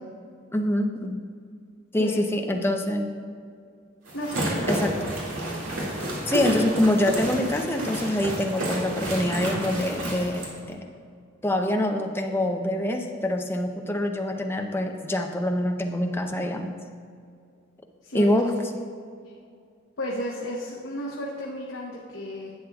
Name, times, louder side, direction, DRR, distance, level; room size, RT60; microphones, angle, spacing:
voice 1, 0.5-1.2 1.9-3.1 4.7-5.0 6.3-10.9 11.4-16.7 18.1-18.9, left 1 dB, 10° left, 4 dB, 0.5 m, -25 dB
voice 2, 4.1-4.6 18.0-18.3 20.0-22.5, left 1 dB, 65° left, -3 dB, 0.9 m, -33 dB
sound 1, 4.1-10.5, right 1 dB, 80° right, 2.0 m, -30 dB
11.0 x 8.4 x 2.3 m, 2.2 s
head